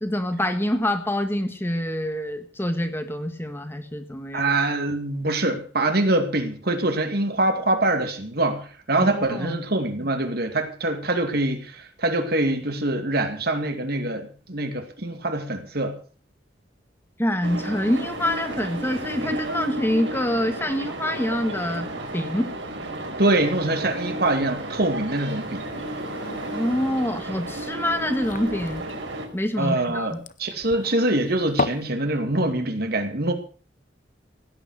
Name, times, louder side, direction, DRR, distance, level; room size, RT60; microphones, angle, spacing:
voice 1, 0.0-4.5 9.0-9.6 17.2-21.9 22.1-22.5 26.5-28.8 29.3-30.2, left 1 dB, 15° left, 1.6 m, -26 dB
voice 2, 4.3-15.9 23.2-25.7 29.6-33.3, right 2 dB, 60° right, 2.5 m, -24 dB
sound 1, 17.4-29.3, right 1 dB, 85° right, 4.9 m, -33 dB
sound 2, 25.4-31.9, left 3 dB, 45° left, 0.9 m, -34 dB
17.0 x 9.4 x 6.4 m
head